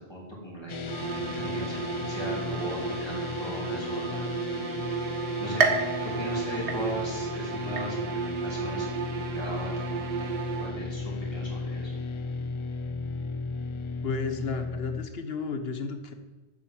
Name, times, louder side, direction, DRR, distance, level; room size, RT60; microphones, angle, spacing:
voice 1, 0.1-4.2 5.4-5.7 6.0-10.3 10.6-12.0, equal, 25° left, -3 dB, 3.5 m, -38 dB
sound 1, 0.7-15.1, left 4 dB, 40° left, 0.5 m, -35 dB
sound 2, 0.9-11.1, right 8 dB, 55° right, 0.6 m, -34 dB
sound 3, 5.6-7.3 7.8-8.3 8.8-8.9 9.9-10.0, right 4 dB, 80° right, 1.5 m, -29 dB
voice 2, 14.0-16.1, left 4 dB, 65° left, 8 dB, 1.3 m, -33 dB
8.8 x 8.1 x 7.7 m, 1.2 s
omnidirectional pair, 1.1 m